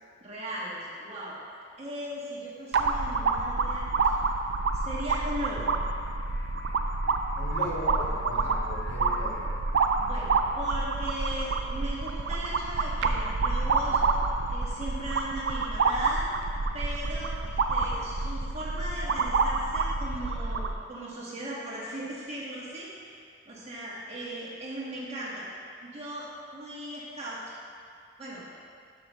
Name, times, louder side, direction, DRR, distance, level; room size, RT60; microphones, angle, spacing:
voice 1, 0.2-1.4 1.8-4.2 4.8-5.7 10.0-14.0 14.5-16.3 16.7-22.9 23.4-25.5 25.8-27.4 28.2-28.5, right 1 dB, 35° right, -6 dB, 1.7 m, -38 dB
sound 1, 2.7-20.8, right 4 dB, 70° right, 0.5 m, -28 dB
sound 2, 3.9-15.2, right 2 dB, 85° left, 1.6 m, -47 dB
voice 2, 7.4-9.5, left 1 dB, 65° left, -3 dB, 1.3 m, -37 dB
11.0 x 5.6 x 3.1 m, 2.2 s
head